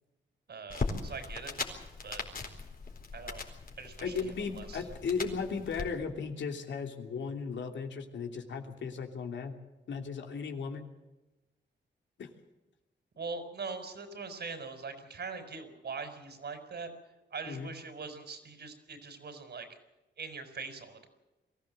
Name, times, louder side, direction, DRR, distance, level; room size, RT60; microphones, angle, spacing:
voice 1, 0.5-1.5 2.0-2.2 3.1-3.4 3.8-4.2 4.5-4.8 13.2-16.9 17.3-19.7 20.2-21.1, right 4 dB, 65° right, 8 dB, 4.7 m, -42 dB
sound 1, 0.7-5.9, left 4 dB, 50° left, 4.2 m, -39 dB
voice 2, 4.0-9.5 9.9-10.9 12.2-12.3 17.4-17.7, left 5 dB, 80° left, 4 dB, 3.0 m, -36 dB
23.5 x 15.5 x 7.7 m, 1.0 s
wide cardioid pair, 105°, 19 cm